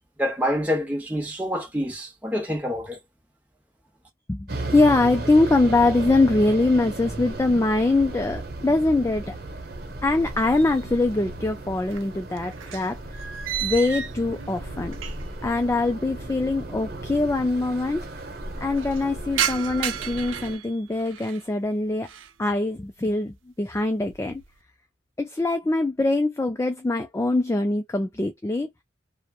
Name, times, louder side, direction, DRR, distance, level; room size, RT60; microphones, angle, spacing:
voice 1, 0.2-3.0, equal, 10° right, 0.8 m, -27 dB
voice 2, 4.3-9.4 10.0-13.3 13.6-15.0 15.4-18.0 18.6-22.1 22.4-24.4 25.2-28.7, left 2 dB, 15° left, 0.3 m, -23 dB
sound 1, 4.5-20.6, right 2 dB, 50° right, 0.9 m, -35 dB
sound 2, 10.2-11.1 11.4-15.5 15.7-15.8 16.7-16.8 17.0-17.1 17.4-17.8 18.2-21.5 21.9-22.4 22.8-23.2 23.6-24.5, right 9 dB, 90° right, 0.5 m, -34 dB
3.0 x 2.1 x 2.3 m
head